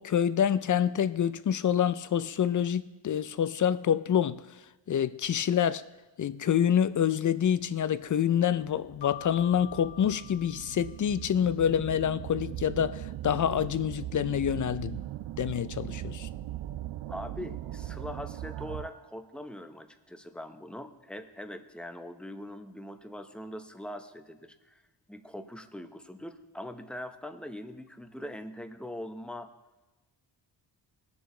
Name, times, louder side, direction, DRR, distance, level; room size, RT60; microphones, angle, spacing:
voice 1, 0.0-4.4 4.9-5.8 6.2-15.0 15.4-16.3, left 9 dB, 45° left, 0.5 m, -27 dB
sound 1, 7.7-7.8 8.5-19.1, right 13 dB, 75° right, 0.5 m, -40 dB
Keyboard (musical), 9.0-11.5, left 10 dB, 70° left, 0.8 m, -46 dB
voice 2, 17.1-24.8 25.1-29.5, left 1 dB, ahead, 0.8 m, -42 dB
19.0 x 7.1 x 3.8 m
cardioid pair, 85°, 45 cm